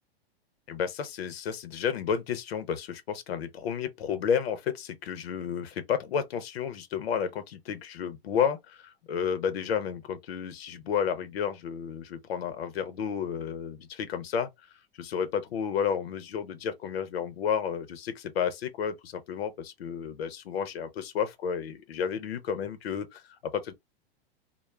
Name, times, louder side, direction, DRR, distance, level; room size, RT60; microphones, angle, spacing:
voice 1, 0.7-14.5 15.0-23.7, left 7 dB, 85° left, 0.7 m, -31 dB
2.3 x 2.0 x 3.1 m
hypercardioid pair, 125°, 30 cm